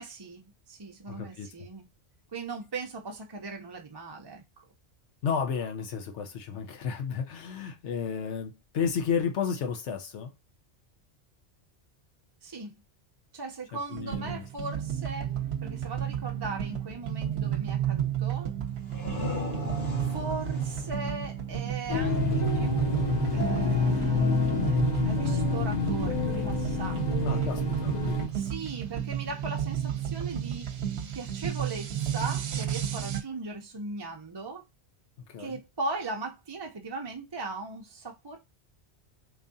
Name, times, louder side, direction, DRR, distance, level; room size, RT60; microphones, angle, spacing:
voice 1, 0.0-1.9 2.3-4.7 12.4-12.8 13.3-15.4 15.6-18.5 20.0-24.8 25.0-27.6 28.3-34.6 35.4-38.4, right 3 dB, 30° right, 0.5 m, -38 dB
voice 2, 1.1-1.7 5.2-10.3 13.7-14.4 27.2-28.2 35.3-35.6, left 6 dB, 90° left, 1.1 m, -32 dB
sound 1, 13.9-33.2, right 10 dB, 70° right, 0.9 m, -32 dB
sound 2, 18.7-22.3, left 1 dB, 65° left, 1.4 m, -36 dB
sound 3, 21.9-28.3, left 4 dB, 40° left, 0.9 m, -28 dB
3.5 x 3.1 x 2.6 m
omnidirectional pair, 1.2 m